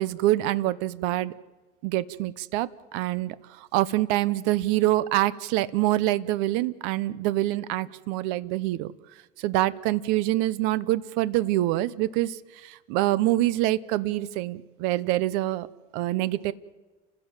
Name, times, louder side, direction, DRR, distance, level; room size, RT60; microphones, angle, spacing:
voice 1, 0.0-1.3 1.8-8.9 9.4-15.7 15.9-16.5, right 16 dB, 60° right, 18 dB, 0.8 m, -25 dB
30.0 x 16.0 x 7.4 m, 1.2 s
cardioid pair, 165°, 20 cm